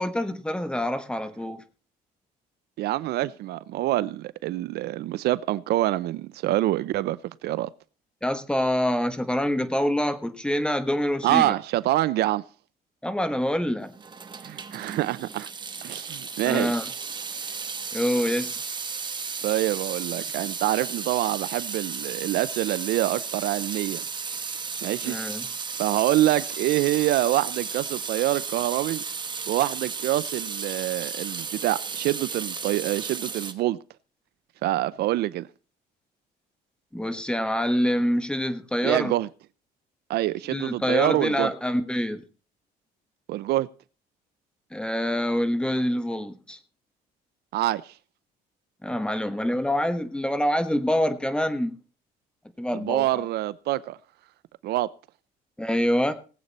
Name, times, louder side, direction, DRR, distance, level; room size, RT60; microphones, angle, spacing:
voice 1, 0.0-1.6 8.2-11.5 13.0-14.0 16.4-16.8 17.9-18.5 25.0-25.5 36.9-39.2 40.5-42.2 44.7-46.6 48.8-51.8 52.6-53.1 55.6-56.1, equal, 5° left, 1.3 m, -26 dB
voice 2, 2.8-7.7 11.2-12.4 14.4-15.5 15.8-16.9 19.4-24.0 24.8-25.2 25.8-29.0 29.5-33.8 34.6-35.5 38.8-39.3 40.1-41.5 43.3-43.7 47.5-47.9 52.7-54.0 54.6-54.9, right 15 dB, 70° right, 0.5 m, -26 dB
Water tap faucet / Sink (filling or washing) / Drip, 13.9-33.5, right 5 dB, 25° right, 1.2 m, -34 dB
19.0 x 8.1 x 4.2 m
cardioid pair, 110°, 17 cm